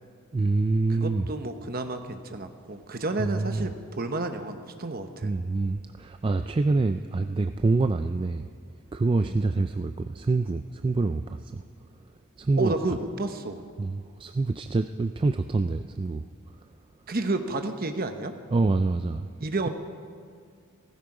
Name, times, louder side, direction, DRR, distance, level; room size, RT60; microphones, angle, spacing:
voice 1, 0.3-1.3 3.2-3.7 5.2-8.5 8.9-11.6 12.4-12.7 13.8-16.2 18.5-19.3, right 3 dB, 25° right, 8 dB, 0.3 m, -26 dB
voice 2, 0.9-5.3 9.2-9.4 12.6-13.6 17.1-18.3 19.4-19.7, right 2 dB, 45° right, 7 dB, 1.0 m, -31 dB
16.0 x 15.0 x 4.9 m, 2.2 s
head